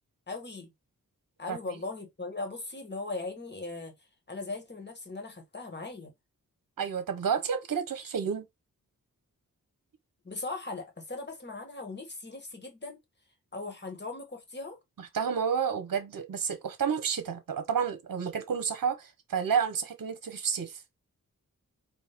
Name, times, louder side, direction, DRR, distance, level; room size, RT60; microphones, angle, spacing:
voice 1, 0.3-0.7 1.4-3.9 4.3-6.1 10.2-13.0 13.5-14.8, left 3 dB, 30° left, 1.6 m, -39 dB
voice 2, 6.8-8.4 15.0-20.8, right 7 dB, 70° right, 0.9 m, -30 dB
4.2 x 2.6 x 3.5 m
cardioid pair, 65°, 35 cm